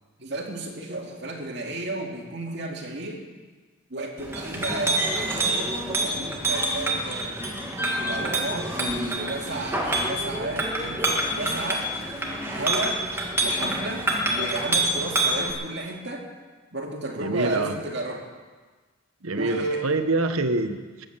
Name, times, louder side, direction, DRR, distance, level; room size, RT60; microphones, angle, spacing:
voice 1, 0.2-3.2 3.9-7.5 8.0-11.9 12.5-13.0 13.4-16.3 16.7-18.2 19.4-19.9, right 2 dB, 55° right, 0 dB, 2.5 m, -33 dB
Chink clink, 4.2-15.5, right 1 dB, 10° right, 1.8 m, -27 dB
voice 2, 17.2-17.8 19.2-21.1, right 2 dB, 85° right, 9 dB, 1.1 m, -26 dB
20.0 x 8.6 x 7.4 m, 1.4 s
head